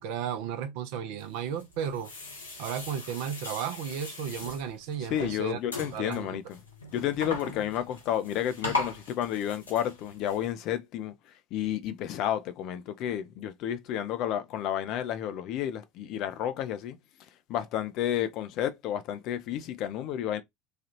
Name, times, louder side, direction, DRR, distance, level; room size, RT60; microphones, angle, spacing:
voice 1, 0.0-2.1 2.6-5.6 5.9-6.4, right 8 dB, 60° right, 0.6 m, -34 dB
sound 1, 1.2-10.5, left 2 dB, 80° left, 0.9 m, -39 dB
voice 2, 5.1-6.6 6.9-11.1 11.5-17.0 17.5-20.4, left 11 dB, 50° left, 0.5 m, -31 dB
3.2 x 2.4 x 2.9 m
figure-of-eight pair, 70°, 0 cm